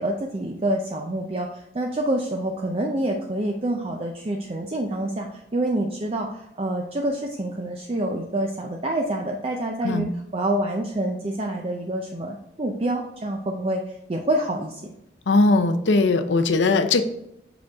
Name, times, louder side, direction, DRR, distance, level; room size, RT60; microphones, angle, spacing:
voice 1, 0.0-10.1 10.3-14.9, right 1 dB, 30° right, 1 dB, 0.5 m, -27 dB
voice 2, 15.3-17.0, left 3 dB, 75° left, 9 dB, 0.6 m, -19 dB
6.1 x 5.0 x 3.5 m, 0.80 s
head